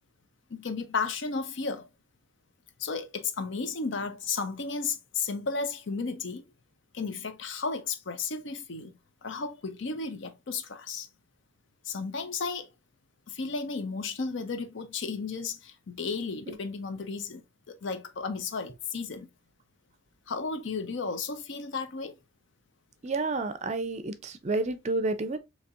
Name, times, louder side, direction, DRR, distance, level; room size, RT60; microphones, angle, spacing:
voice 1, 0.5-1.9 2.8-6.5 6.9-8.9 9.2-11.1 11.8-12.7 13.3-17.4 17.7-19.3 20.3-22.1, left 4 dB, 65° left, 0.6 m, -33 dB
voice 2, 23.0-25.4, right 3 dB, 35° right, 0.4 m, -30 dB
4.3 x 2.9 x 2.5 m
head